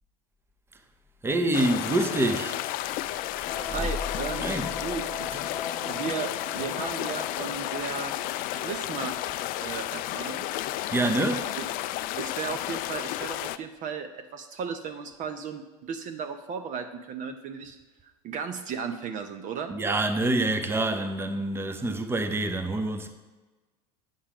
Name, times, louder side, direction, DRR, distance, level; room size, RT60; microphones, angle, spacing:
voice 1, 1.2-2.6 3.3-3.9 4.4-4.7 10.9-11.5 19.7-23.1, right 2 dB, 10° right, 0.8 m, -27 dB
sound 1, 1.5-13.6, left 14 dB, 45° left, 0.4 m, -32 dB
sound 2, 3.4-10.4, left 4 dB, 15° left, 1.0 m, -41 dB
voice 2, 3.7-5.3 5.8-8.2 8.5-9.2 9.6-10.5 11.6-11.7 12.2-17.8 18.2-19.7, right 6 dB, 40° right, 0.7 m, -35 dB
9.1 x 5.5 x 4.9 m
hypercardioid pair, 100°, 20 cm